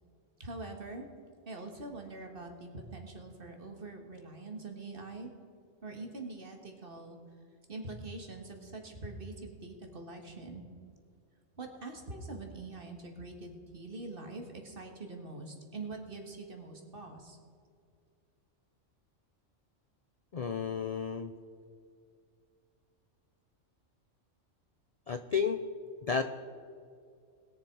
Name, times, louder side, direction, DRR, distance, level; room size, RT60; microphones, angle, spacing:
voice 1, 0.4-1.1 1.5-5.3 5.8-7.2 7.7-10.6 11.5-17.4, right 2 dB, 45° right, 3 dB, 1.9 m, -44 dB
voice 2, 20.3-21.3 25.1-25.6 26.1-26.2, left 6 dB, 55° left, 9 dB, 0.4 m, -31 dB
21.0 x 7.0 x 4.7 m, 2.3 s
omnidirectional pair, 1.3 m